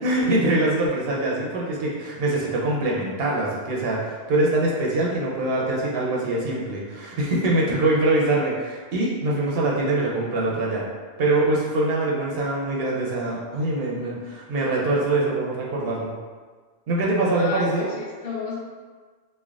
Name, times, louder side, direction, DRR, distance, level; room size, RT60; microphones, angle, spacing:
voice 1, 0.0-10.8 11.2-16.1 16.9-17.9, right 2 dB, 70° right, -3 dB, 0.8 m, -23 dB
voice 2, 17.4-18.6, left 4 dB, 55° left, -8 dB, 1.0 m, -32 dB
3.2 x 2.2 x 2.4 m, 1.5 s
omnidirectional pair, 1.1 m